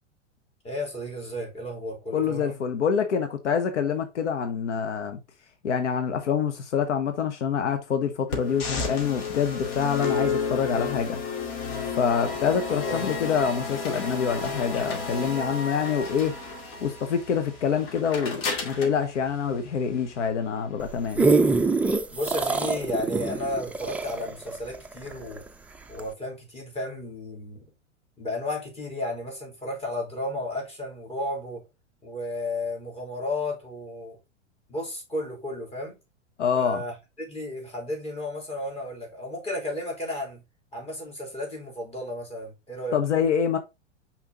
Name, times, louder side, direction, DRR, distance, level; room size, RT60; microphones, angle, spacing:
voice 1, 0.6-2.6 12.8-13.2 22.1-25.4 25.9-27.6 28.2-31.6 32.0-34.2 34.7-36.0 36.5-40.4 40.7-43.0, left 1 dB, 15° left, 3.4 m, -33 dB
voice 2, 2.1-5.2 5.6-11.2 11.9-16.4 16.8-21.3 36.4-36.8 42.9-43.6, left 7 dB, 70° left, 1.1 m, -26 dB
sound 1, 8.3-20.3, left 5 dB, 55° left, 2.6 m, -32 dB
sound 2, 20.8-25.5 26.0-26.1, right 3 dB, 5° right, 0.4 m, -24 dB
5.7 x 4.4 x 3.8 m
hypercardioid pair, 105°, 36 cm